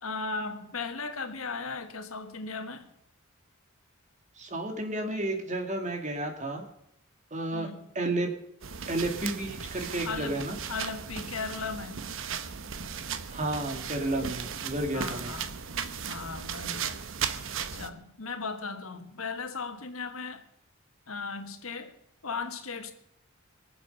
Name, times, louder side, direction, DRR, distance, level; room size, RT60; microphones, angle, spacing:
voice 1, 0.0-2.9 7.5-7.9 10.0-10.4 10.7-12.0 14.6-15.5 16.1-17.0 17.7-20.4 21.1-21.9 22.2-22.9, left 4 dB, 90° left, 7 dB, 1.6 m, -37 dB
voice 2, 4.4-6.6 7.3-7.7 7.9-8.3 8.9-10.6 13.3-15.3, right 2 dB, 35° right, 4 dB, 2.2 m, -31 dB
sound 1, 8.6-17.9, right 7 dB, 65° right, 0.9 m, -36 dB
23.0 x 7.7 x 5.5 m, 0.76 s
head